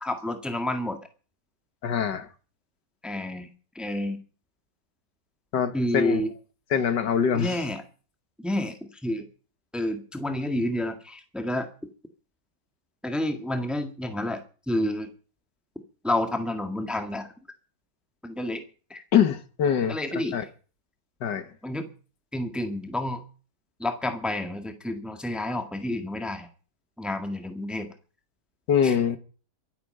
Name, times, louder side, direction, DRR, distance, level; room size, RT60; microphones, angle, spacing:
voice 1, 0.0-1.0 3.0-3.5 3.7-4.2 5.7-6.3 7.3-7.8 8.4-8.7 9.0-9.3 9.7-11.7 13.0-14.4 14.7-15.1 16.0-17.3 18.2-18.6 18.9-19.0 19.9-20.4 21.6-21.9 22.3-23.2 23.8-26.5 27.0-27.9 28.8-28.9, left 1 dB, ahead, 1.6 m, -29 dB
voice 2, 1.8-2.3 5.5-6.2 6.7-7.6 19.1-20.0 20.3-20.4 21.2-21.5 28.7-29.2, left 7 dB, 70° left, 2.0 m, -23 dB
23.5 x 8.6 x 5.5 m
omnidirectional pair, 1.9 m